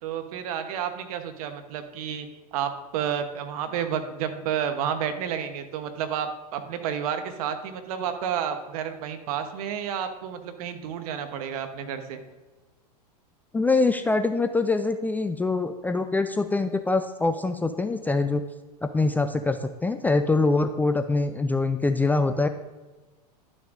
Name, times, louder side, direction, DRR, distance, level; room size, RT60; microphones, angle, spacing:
voice 1, 0.0-12.2, right 8 dB, 65° right, 8 dB, 1.0 m, -31 dB
voice 2, 13.5-18.4 18.8-22.5, left 3 dB, 10° left, 8 dB, 0.3 m, -24 dB
11.5 x 6.1 x 2.6 m, 1.2 s
hypercardioid pair, 100°, 21 cm